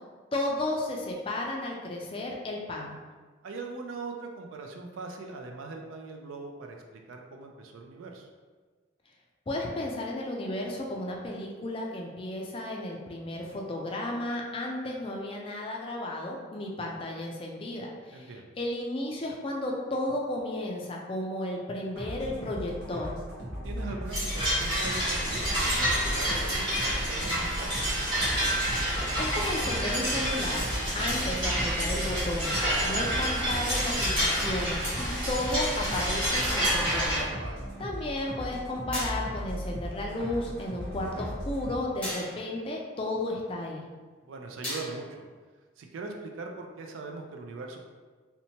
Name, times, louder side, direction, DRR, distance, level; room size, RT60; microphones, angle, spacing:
voice 1, 0.3-3.0 9.5-18.3 18.6-23.2 29.2-37.3 37.8-43.9, left 1 dB, 25° left, -1 dB, 0.3 m, -33 dB
voice 2, 3.4-8.3 18.1-18.5 23.6-27.8 37.4-37.7 44.2-45.2 45.8-47.8, right 3 dB, 85° right, 2 dB, 0.4 m, -41 dB
sound 1, 21.9-41.8, equal, 55° right, 0.7 m, -38 dB
sound 2, 24.1-37.2, equal, 25° right, 1.0 m, -28 dB
sound 3, 38.9-39.5 42.0-42.6 44.6-45.2, equal, 5° left, 0.8 m, -37 dB
2.8 x 2.1 x 2.8 m, 1.4 s
head